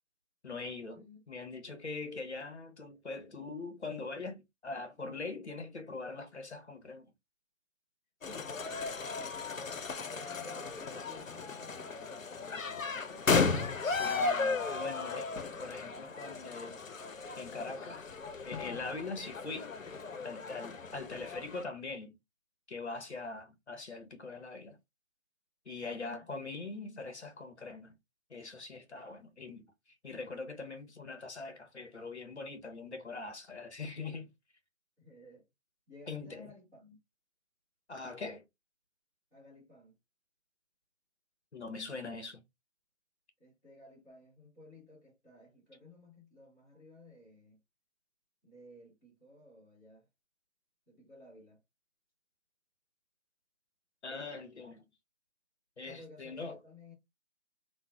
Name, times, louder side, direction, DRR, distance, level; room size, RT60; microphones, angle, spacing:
voice 1, 0.4-7.1 13.8-16.9 17.4-18.1 18.4-19.7 20.2-22.2 22.7-24.8 25.7-28.0 28.3-29.7 30.0-34.3 36.1-36.4 37.9-38.4 41.5-42.4 54.0-54.8 55.8-56.6, left 3 dB, 55° left, 1.0 m, -42 dB
sound 1, 8.2-21.6, left 4 dB, 80° left, 0.6 m, -35 dB
voice 2, 8.2-13.2 25.9-26.3 35.0-35.5 35.9-37.0 39.3-40.0 43.4-47.6 48.4-50.1 50.9-51.6 55.8-56.9, left 2 dB, 10° left, 0.9 m, -56 dB
3.2 x 2.1 x 3.4 m
figure-of-eight pair, 160°, 39 cm